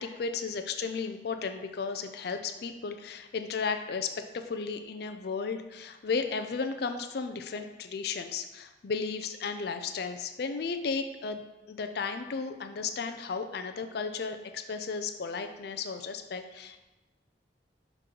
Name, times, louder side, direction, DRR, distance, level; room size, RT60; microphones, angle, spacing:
voice 1, 0.0-16.8, left 5 dB, 60° left, 7 dB, 0.4 m, -34 dB
6.1 x 3.8 x 4.5 m, 1.1 s
head